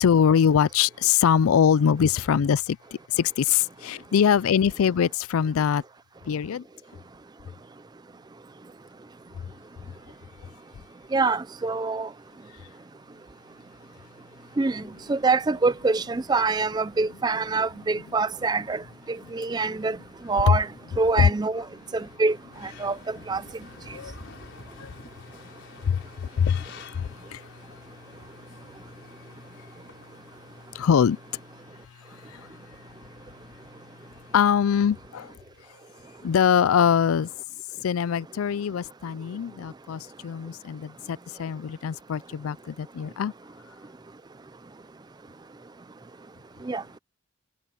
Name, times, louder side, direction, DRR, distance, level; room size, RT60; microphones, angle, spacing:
voice 1, 0.0-2.8 3.2-5.8 6.3-6.6 20.5-20.6 21.2-21.3 23.9-24.3 24.8-24.9 25.9-26.6 27.0-27.4 30.8-31.2 34.3-35.3 36.2-37.3 37.8-43.3, left 7 dB, 75° left, 0.4 m, -23 dB
voice 2, 11.1-12.1 14.6-14.8 15.1-18.8 19.1-20.0 20.3-20.7 21.0-21.6 21.9-22.4 22.8-23.4 46.7-46.8, right 3 dB, 20° right, 0.3 m, -25 dB
sound 1, 22.5-30.7, left 3 dB, 55° left, 5.7 m, -49 dB
head